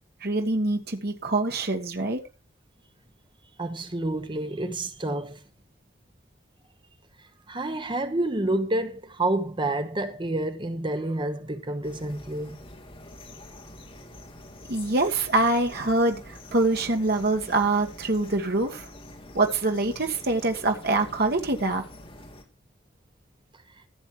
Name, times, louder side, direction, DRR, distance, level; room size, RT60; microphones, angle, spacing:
voice 1, 0.2-2.2 14.7-18.9 19.3-21.8, right 2 dB, 55° right, 1.7 m, -25 dB
voice 2, 3.6-5.4 7.5-12.6, right 2 dB, 25° right, 1.0 m, -29 dB
sound 1, 11.8-22.4, left 1 dB, 30° left, 2.8 m, -46 dB
15.5 x 7.2 x 4.6 m
head